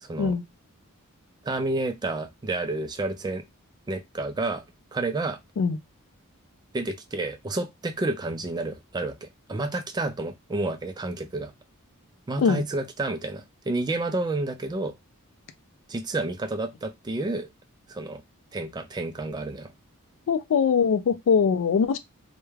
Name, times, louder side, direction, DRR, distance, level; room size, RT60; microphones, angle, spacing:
voice 1, 0.0-0.4 1.4-3.4 3.9-4.6 4.9-5.4 6.7-11.5 12.3-14.9 15.9-17.5 17.9-18.2 18.5-19.7, right 2 dB, 20° right, 0.3 m, -30 dB
voice 2, 20.3-22.0, left 6 dB, 60° left, 0.3 m, -22 dB
2.3 x 2.1 x 3.1 m
head